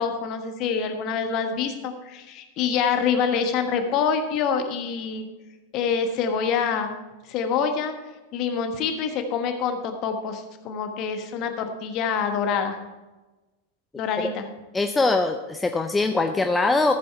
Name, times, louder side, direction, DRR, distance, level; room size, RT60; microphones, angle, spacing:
voice 1, 0.0-5.3 5.7-7.0 7.3-7.9 8.3-12.8 14.0-14.5, left 6 dB, 40° left, 6 dB, 1.3 m, -26 dB
voice 2, 14.7-16.9, left 3 dB, 10° left, 6 dB, 0.5 m, -22 dB
14.0 x 7.7 x 4.5 m, 1.2 s
figure-of-eight pair, 90°, 0 cm